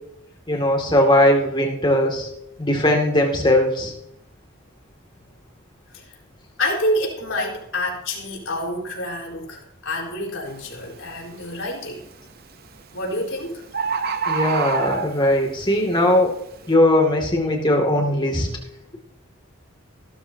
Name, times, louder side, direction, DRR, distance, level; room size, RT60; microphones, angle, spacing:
voice 1, 0.5-2.3 2.6-3.9 14.3-16.3 16.7-18.5, left 1 dB, 20° left, 1 dB, 2.3 m, -19 dB
voice 2, 6.6-12.0 12.9-13.6, left 1 dB, 70° left, -1 dB, 4.4 m, -27 dB
Bird, 10.5-10.7 11.3-11.7 12.7-12.8 13.1-13.2 13.4-13.5 13.7-15.5 16.0-16.1, right 5 dB, 45° right, 0.8 m, -25 dB
16.5 x 13.0 x 2.8 m, 0.80 s
head